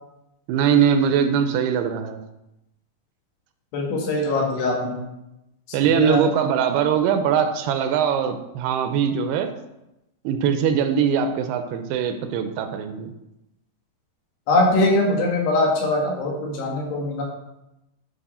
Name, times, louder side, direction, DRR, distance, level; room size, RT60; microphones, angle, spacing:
voice 1, 0.5-2.2 5.7-9.5 10.2-13.1, right 7 dB, 80° right, 8 dB, 2.5 m, -21 dB
voice 2, 3.7-5.0 5.7-6.2 14.5-17.2, left 2 dB, 85° left, -1 dB, 3.8 m, -22 dB
10.0 x 4.9 x 4.2 m, 0.92 s
omnidirectional pair, 4.7 m